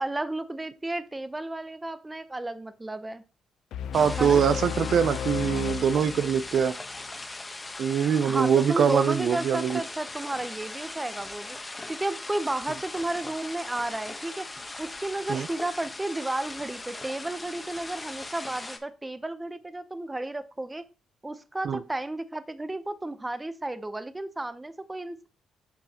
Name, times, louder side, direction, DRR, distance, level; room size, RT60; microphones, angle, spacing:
voice 1, 0.0-3.2 4.2-4.5 8.2-11.6 11.9-14.5 14.8-20.8 21.2-25.3, right 2 dB, 15° right, 0.7 m, -33 dB
sound 1, 3.7-7.0, left 8 dB, 75° left, 0.5 m, -33 dB
sound 2, 3.9-18.8, left 2 dB, 20° left, 1.1 m, -39 dB
voice 2, 3.9-6.8 7.8-9.8 15.3-15.5 21.6-21.8, right 7 dB, 60° right, 0.5 m, -23 dB
8.3 x 6.1 x 2.9 m
cardioid pair, 90°, 0 cm